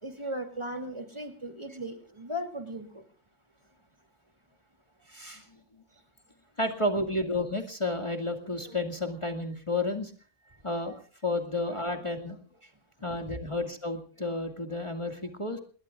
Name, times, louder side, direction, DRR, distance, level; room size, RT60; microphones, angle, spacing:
voice 1, 0.0-3.0 6.9-7.1 13.3-13.4, equal, 25° right, 4 dB, 2.9 m, -37 dB
voice 2, 5.1-5.4 6.6-10.1 10.6-12.4 13.0-15.6, left 2 dB, 25° left, 4 dB, 2.1 m, -31 dB
28.0 x 21.5 x 2.4 m, 0.42 s
omnidirectional pair, 1.2 m